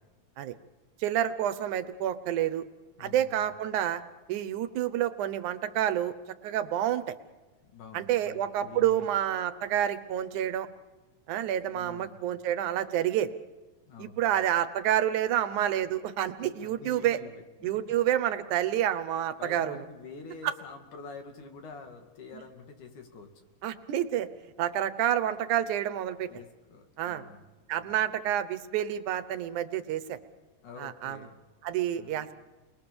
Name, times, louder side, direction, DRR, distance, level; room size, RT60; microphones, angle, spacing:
voice 1, 1.0-2.6 3.0-4.0 4.3-6.2 6.4-7.2 7.9-10.7 11.3-13.3 14.0-17.2 17.6-19.8 20.4-20.5 23.6-24.3 24.6-26.3 27.0-27.2 27.7-30.2 30.8-31.2 31.6-32.3, right 11 dB, 80° right, 11 dB, 2.4 m, -28 dB
voice 2, 3.0-3.5 7.6-9.1 11.7-12.2 13.9-14.2 16.5-17.7 19.4-23.5 26.3-28.1 30.6-31.4 31.9-32.3, left 4 dB, 80° left, 5 dB, 4.0 m, -47 dB
30.0 x 22.0 x 7.1 m, 1.2 s
omnidirectional pair, 3.5 m